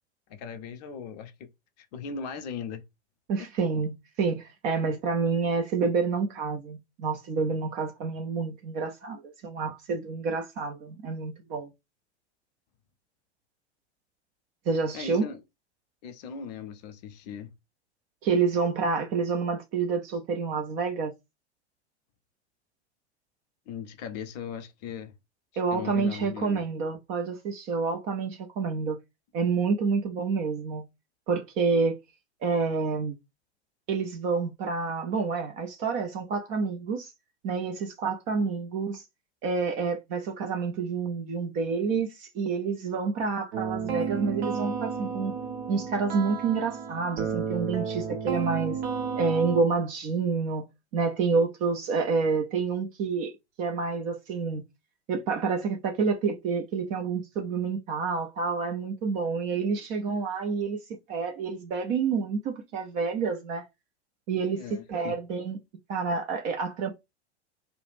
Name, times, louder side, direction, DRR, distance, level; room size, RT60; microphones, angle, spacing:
voice 1, 0.3-1.5 1.8-2.8 3.4-3.5 14.9-15.4 16.0-17.5 23.7-25.1 25.7-26.7 64.6-65.1, left 6 dB, 40° left, 0.5 m, -38 dB
voice 2, 3.3-11.7 14.7-15.3 18.2-21.1 25.6-29.0 29.3-30.8 31.3-32.0 32.4-33.1 33.9-37.1 37.4-39.0 39.4-45.3 45.7-48.8 49.2-50.7 50.9-53.3 53.6-54.6 55.1-60.8 61.1-63.7 64.3-65.6 65.9-66.9, right 4 dB, 25° right, 0.3 m, -28 dB
sound 1, 43.5-49.6, right 6 dB, 65° right, 0.9 m, -32 dB
2.2 x 2.0 x 3.3 m
figure-of-eight pair, 90°, 34 cm